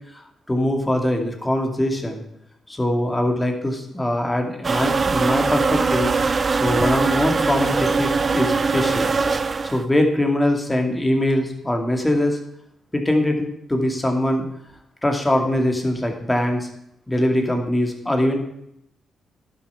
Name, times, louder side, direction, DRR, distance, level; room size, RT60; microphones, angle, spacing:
voice 1, 0.1-2.2 2.7-6.1 6.5-9.1 9.6-12.4 12.9-14.5 15.0-16.7 17.1-18.4, left 1 dB, 15° left, 3 dB, 2.2 m, -22 dB
sound 1, 4.6-9.8, right 4 dB, 35° right, 0.5 m, -21 dB
11.5 x 7.0 x 5.7 m, 0.77 s
cardioid pair, 85°, 0 cm